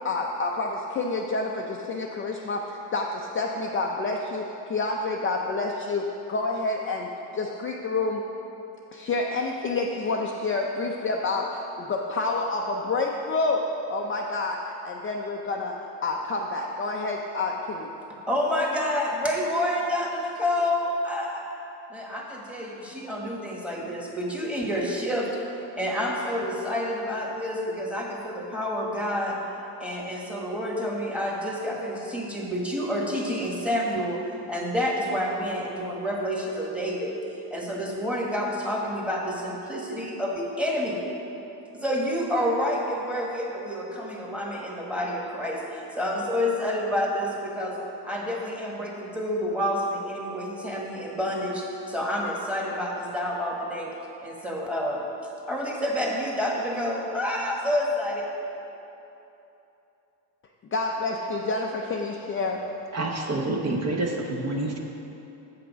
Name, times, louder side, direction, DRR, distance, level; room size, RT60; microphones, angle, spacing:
voice 1, 0.0-8.2 8.9-17.9 60.7-62.6, left 3 dB, 25° left, 0 dB, 0.4 m, -28 dB
voice 2, 18.3-21.4 21.9-25.3 25.8-29.4 29.8-34.2 34.5-37.1 37.5-41.0 41.7-47.8 48.0-53.9 54.2-55.0 55.5-58.2, left 1 dB, 5° right, -2 dB, 1.4 m, -28 dB
voice 3, 62.9-64.8, right 2 dB, 35° right, 0 dB, 0.9 m, -28 dB
8.1 x 6.0 x 5.0 m, 3.0 s
cardioid pair, 105°, 48 cm